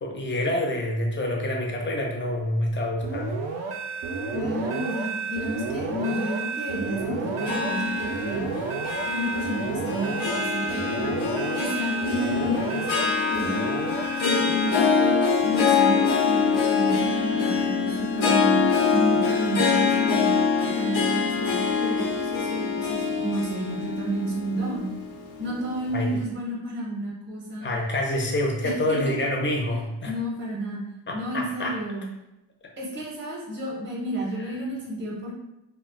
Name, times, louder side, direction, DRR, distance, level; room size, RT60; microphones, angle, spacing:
voice 1, 0.0-3.4 25.9-26.2 27.6-30.1 31.1-31.8 34.4-34.6, left 1 dB, 25° left, 0 dB, 0.4 m, -27 dB
sound 1, 3.0-15.2, right 4 dB, 85° right, 0.5 m, -31 dB
voice 2, 4.3-8.5 9.1-11.2 11.5-13.8 14.2-18.6 18.9-20.3 20.6-24.9 25.4-27.7 28.6-29.3 30.0-30.8 31.1-32.0 32.8-35.4, equal, 25° right, -3 dB, 0.6 m, -31 dB
Harp, 7.4-25.9, left 6 dB, 90° left, 0.6 m, -25 dB
2.3 x 2.1 x 3.6 m, 0.92 s
wide cardioid pair, 145°, 47 cm